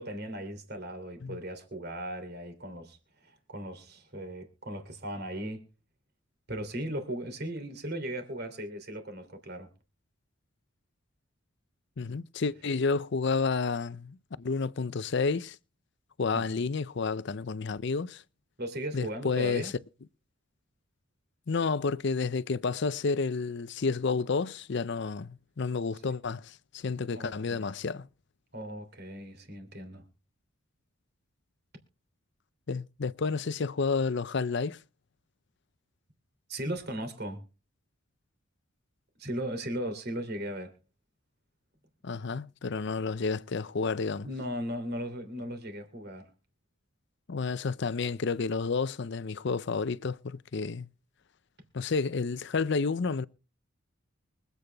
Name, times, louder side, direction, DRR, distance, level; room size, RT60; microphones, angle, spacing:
voice 1, 0.0-5.6 6.5-9.7 16.3-16.6 18.6-19.7 27.1-27.7 28.5-30.0 36.5-37.4 39.2-40.7 44.2-46.3, right 1 dB, 50° right, 3.0 m, -37 dB
voice 2, 12.0-15.6 16.2-18.2 18.9-19.7 21.5-28.1 32.7-34.8 42.0-44.3 47.3-50.9 51.7-53.3, left 4 dB, 60° left, 0.5 m, -30 dB
24.0 x 8.3 x 3.4 m
head